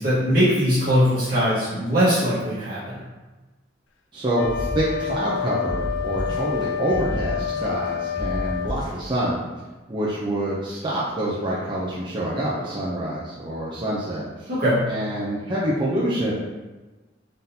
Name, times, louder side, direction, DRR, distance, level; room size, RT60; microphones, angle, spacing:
voice 1, 0.0-3.0 14.5-14.9, equal, 50° right, -12 dB, 1.3 m, -21 dB
voice 2, 4.1-9.4 9.9-14.5 14.9-16.3, right 1 dB, 25° right, -7 dB, 0.5 m, -26 dB
Wind instrument woodwind instrument, 4.3-8.8, left 8 dB, 80° left, 0.4 m, -28 dB
sound 1, 4.4-5.4 5.7-6.6 6.9-7.9 8.2-9.1, equal, 25° left, 0.7 m, -31 dB
3.9 x 3.7 x 2.7 m, 1.2 s
head